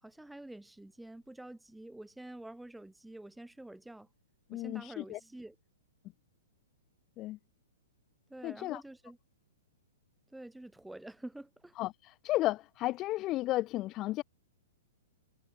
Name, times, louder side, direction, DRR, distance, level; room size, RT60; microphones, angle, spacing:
voice 1, 0.0-4.1 4.5-5.6 8.3-9.2 10.3-11.7, right 1 dB, 5° right, 6.1 m, -48 dB
voice 2, 4.5-5.2 7.2-7.4 8.4-8.8 11.8-14.2, left 16 dB, 30° left, 1.3 m, -33 dB
hypercardioid pair, 125°, 0 cm